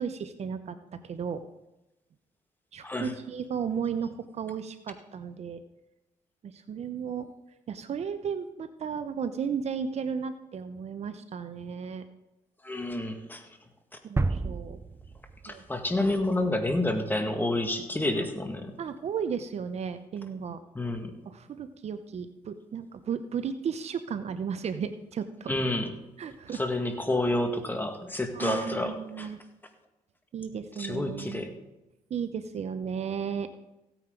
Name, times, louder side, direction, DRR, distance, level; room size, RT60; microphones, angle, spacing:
voice 1, 0.0-1.4 2.7-5.6 6.4-7.3 7.7-12.0 14.0-14.8 15.5-15.7 18.8-20.6 21.3-25.5 26.2-26.6 28.3-29.4 30.3-31.5 32.1-33.5, right 7 dB, 55° right, 10 dB, 0.8 m, -34 dB
voice 2, 12.6-13.5 15.4-18.7 20.8-21.1 25.5-25.9 26.5-29.3 30.8-31.5, left 1 dB, 15° left, 5 dB, 1.9 m, -29 dB
sound 1, 14.2-16.1, right 3 dB, 20° right, 0.6 m, -31 dB
16.5 x 9.2 x 3.9 m, 0.96 s
cardioid pair, 75°, 13 cm